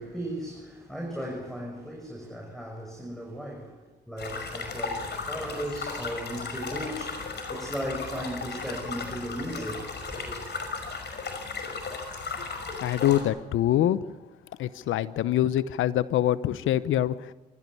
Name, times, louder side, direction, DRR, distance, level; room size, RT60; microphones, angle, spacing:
voice 1, 0.0-10.4, equal, ahead, 6.2 m, -36 dB
sound 1, 4.2-13.2, left 4 dB, 55° left, 5.7 m, -35 dB
voice 2, 12.8-14.0 14.6-17.3, left 12 dB, 75° left, 0.9 m, -25 dB
23.5 x 15.0 x 9.9 m
supercardioid pair, 50°, 21 cm